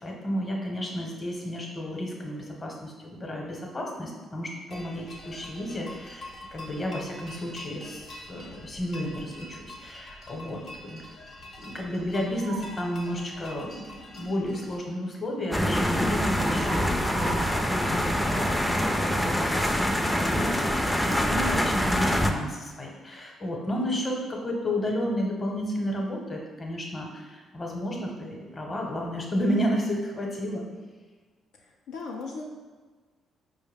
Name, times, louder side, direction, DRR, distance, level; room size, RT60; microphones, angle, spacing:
voice 1, 0.0-11.0 11.6-13.8 14.1-16.8 17.1-30.6, equal, 30° left, 0 dB, 0.9 m, -32 dB
sound 1, 4.7-14.8, left 1 dB, 60° left, 0.8 m, -45 dB
sound 2, 12.3-12.9 16.2-19.0, right 4 dB, 70° right, 0.3 m, -39 dB
sound 3, 15.5-22.3, equal, 5° left, 0.4 m, -25 dB
voice 2, 23.7-24.1 31.6-32.4, left 4 dB, 80° left, -2 dB, 0.4 m, -39 dB
4.7 x 2.1 x 3.3 m, 1.4 s
supercardioid pair, 60°, 0 cm